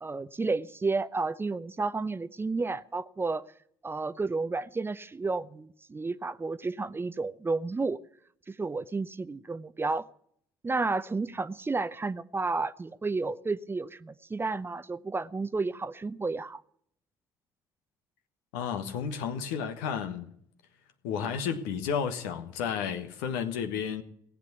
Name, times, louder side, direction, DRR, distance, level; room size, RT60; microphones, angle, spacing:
voice 1, 0.0-3.4 3.8-8.0 8.5-10.1 10.6-16.6, right 3 dB, 20° right, 0.7 m, -31 dB
voice 2, 18.5-20.3 21.0-24.0, left 7 dB, 70° left, 1.3 m, -32 dB
18.0 x 8.5 x 8.2 m
figure-of-eight pair, 50°, 11 cm